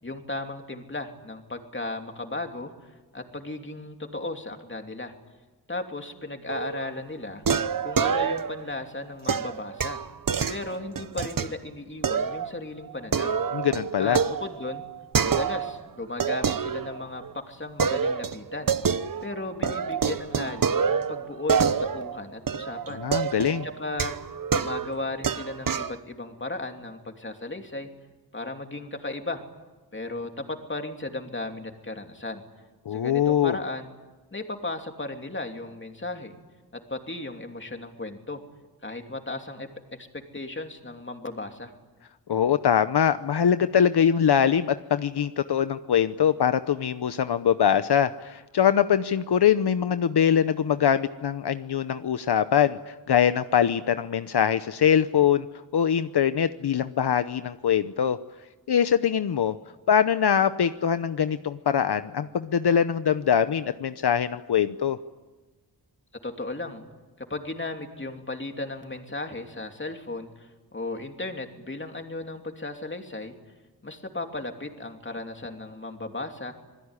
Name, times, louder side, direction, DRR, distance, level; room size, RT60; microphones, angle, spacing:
voice 1, 0.0-5.1 5.7-7.4 7.8-10.0 10.5-13.4 14.0-14.8 15.2-18.7 19.2-23.0 23.6-24.1 24.5-27.9 28.3-29.4 29.9-32.4 32.9-33.9 34.3-36.3 36.7-38.4 38.8-39.7 40.0-41.7 66.2-66.8 67.3-73.3 73.8-76.5, left 2 dB, 30° left, 4 dB, 3.0 m, -35 dB
sound 1, 6.5-6.9 7.4-8.7 9.3-11.5 12.0-12.5 12.8-15.8 16.2-17.3 17.8-19.3 19.6-26.0, right 6 dB, 55° right, 1.0 m, -27 dB
voice 2, 13.5-14.2 23.0-23.7 32.9-33.6 42.3-55.5 55.7-58.2 58.7-59.6 59.9-65.0, left 8 dB, 75° left, 11 dB, 0.8 m, -23 dB
27.0 x 21.0 x 9.9 m, 1.2 s
wide cardioid pair, 95°, 40 cm